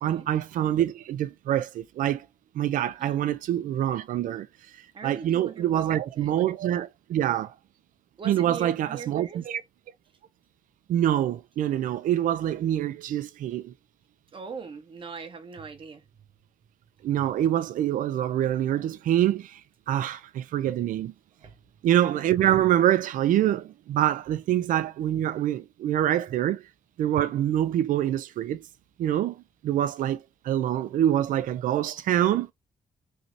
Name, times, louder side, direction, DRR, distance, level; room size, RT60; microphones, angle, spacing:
voice 1, 0.0-2.3 2.5-4.5 5.0-7.5 8.2-9.6 10.9-13.7 17.0-19.6 19.9-21.1 21.8-26.6 27.0-28.7 29.0-29.4 29.6-32.5, right 11 dB, 80° right, 0.4 m, -25 dB
voice 2, 4.9-6.4 8.2-9.4 14.3-16.0 21.4-21.5, right 5 dB, 40° right, 0.8 m, -41 dB
3.1 x 2.7 x 2.6 m
cardioid pair, 120°, 14 cm